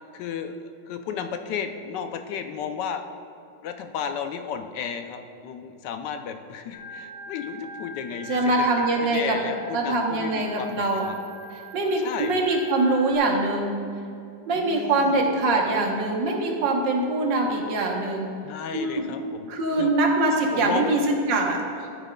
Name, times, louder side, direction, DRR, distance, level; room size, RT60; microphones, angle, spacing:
voice 1, 0.1-3.0 3.6-8.5 9.0-11.1 12.0-12.4 14.5-15.3 18.4-19.9 20.5-20.9, left 7 dB, 75° left, 7 dB, 1.1 m, -33 dB
Organ, 6.7-13.2, equal, 10° right, 1.6 m, -41 dB
voice 2, 8.3-9.4 9.7-11.1 11.5-13.9 14.5-18.3 18.7-19.1 19.5-21.9, right 2 dB, 75° right, 1 dB, 1.7 m, -23 dB
13.0 x 8.7 x 2.2 m, 2.6 s
omnidirectional pair, 2.0 m